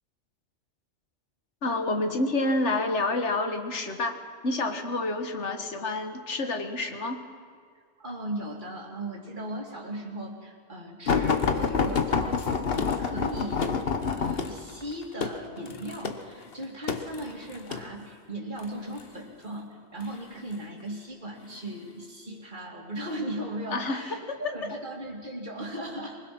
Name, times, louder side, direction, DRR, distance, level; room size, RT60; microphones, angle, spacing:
voice 1, 1.6-7.3 23.7-24.4, left 2 dB, 70° left, 7 dB, 1.8 m, -29 dB
voice 2, 8.0-12.5 12.7-26.2, right 1 dB, 40° right, 0 dB, 3.0 m, -37 dB
sound 1, 11.1-17.9 18.6-19.1 20.0-20.7 21.4-21.6 22.0-22.1, left 5 dB, 55° left, 1.3 m, -28 dB
24.0 x 20.5 x 6.1 m, 2.1 s
omnidirectional pair, 1.2 m